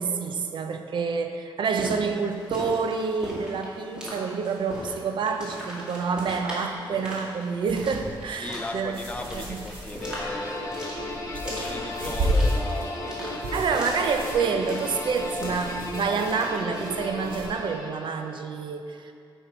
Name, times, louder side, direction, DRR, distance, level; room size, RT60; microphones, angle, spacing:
voice 1, 0.0-9.0 9.5-9.6 13.5-19.1, right 5 dB, 65° right, 6 dB, 0.6 m, -28 dB
sound 1, 1.7-17.0, equal, 10° right, 1.8 m, -40 dB
sound 2, 7.7-17.5, equal, 90° right, 1.7 m, -33 dB
voice 2, 8.3-13.1 13.7-13.8, left 2 dB, 15° left, 3 dB, 0.5 m, -37 dB
sound 3, 10.0-18.4, left 1 dB, 40° left, 1.0 m, -35 dB
9.7 x 5.5 x 4.4 m, 2.4 s
wide cardioid pair, 175°, 9 cm